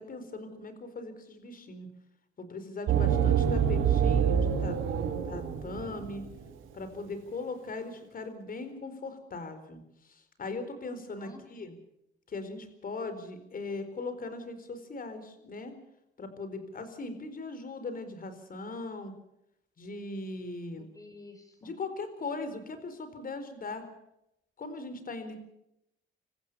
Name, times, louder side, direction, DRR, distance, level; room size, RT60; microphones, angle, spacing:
voice 1, 0.0-1.9 2.4-4.8 5.2-6.2 6.7-11.7 12.3-15.7 16.2-19.1 19.8-20.9 21.6-23.8 24.6-25.4, left 3 dB, 45° left, 9 dB, 4.3 m, -39 dB
sound 1, 2.9-6.3, right 8 dB, 80° right, 3.0 m, -26 dB
voice 2, 3.1-3.4 11.2-11.7 20.8-21.7, left 2 dB, 15° left, 4 dB, 7.0 m, -52 dB
27.5 x 15.0 x 6.9 m, 0.81 s
cardioid pair, 90°, 20 cm